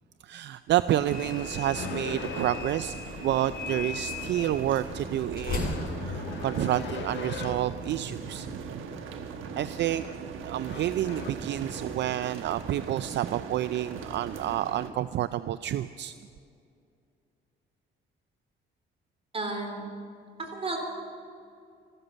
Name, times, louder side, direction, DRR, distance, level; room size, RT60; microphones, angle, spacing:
voice 1, 0.2-8.8 9.5-10.0 10.4-16.1, right 12 dB, 65° right, 14 dB, 0.4 m, -29 dB
sound 1, 0.9-14.9, right 5 dB, 85° right, 1.2 m, -40 dB
sound 2, 1.1-6.9, left 4 dB, 50° left, 4.9 m, -37 dB
sound 3, 1.7-3.0 5.4-7.8 9.9-10.3 10.7-11.3, left 6 dB, 70° left, 1.4 m, -39 dB
voice 2, 19.3-19.9 20.4-20.8, right 2 dB, 30° right, 3 dB, 3.6 m, -32 dB
14.5 x 13.5 x 6.9 m, 2.4 s
cardioid pair, 90°, 20 cm